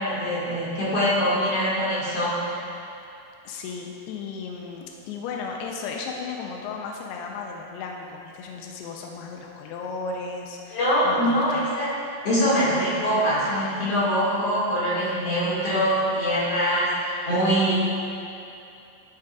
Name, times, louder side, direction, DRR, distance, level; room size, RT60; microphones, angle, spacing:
voice 1, 0.0-2.7 10.7-11.9 12.2-17.8, equal, 45° left, -9 dB, 2.5 m, -23 dB
voice 2, 3.4-11.7 17.6-17.8, left 4 dB, 80° left, 0 dB, 2.6 m, -35 dB
13.5 x 7.6 x 2.4 m, 2.6 s
omnidirectional pair, 4.8 m